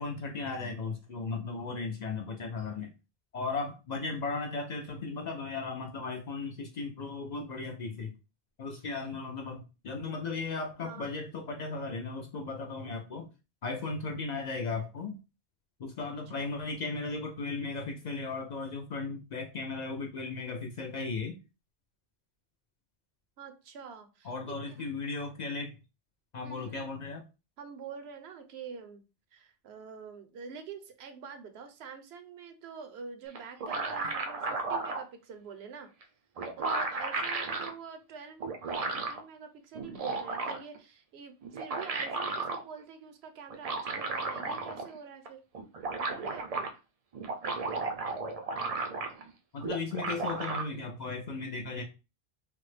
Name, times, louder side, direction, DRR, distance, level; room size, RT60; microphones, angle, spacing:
voice 1, 0.0-2.9 3.3-8.1 8.6-13.3 13.6-15.2 15.8-21.4 24.2-25.7 26.3-27.2 49.5-51.8, left 4 dB, 55° left, 3 dB, 0.5 m, -36 dB
voice 2, 10.8-11.1 16.1-16.5 23.4-24.8 26.4-26.8 27.6-29.0 29.3-35.9 36.6-45.4 45.9-46.7, right 6 dB, 80° right, 7 dB, 0.9 m, -46 dB
sound 1, 33.3-35.0 36.0-36.1 36.4-37.7 38.4-39.2 39.7-40.8 41.4-42.6 43.5-45.0 45.2-45.3 45.5-46.7 47.1-49.3 49.6-50.6, right 3 dB, 55° right, 0.4 m, -34 dB
3.3 x 2.0 x 3.2 m, 0.29 s
omnidirectional pair, 1.1 m